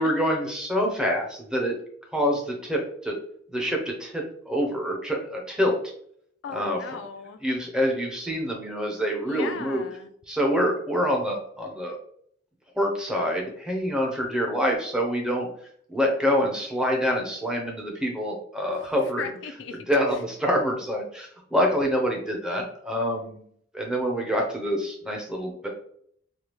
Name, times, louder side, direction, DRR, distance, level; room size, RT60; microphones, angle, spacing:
voice 1, 0.0-1.8 2.1-3.2 3.5-5.8 6.5-6.8 7.4-9.8 10.3-12.0 12.8-15.5 15.9-19.3 19.9-23.4 23.7-25.7, equal, 5° right, 0 dB, 0.6 m, -26 dB
voice 2, 6.4-7.4 9.3-10.1 18.7-18.8 19.2-19.8, left 6 dB, 65° left, 8 dB, 0.3 m, -37 dB
3.3 x 2.2 x 2.9 m, 0.63 s
head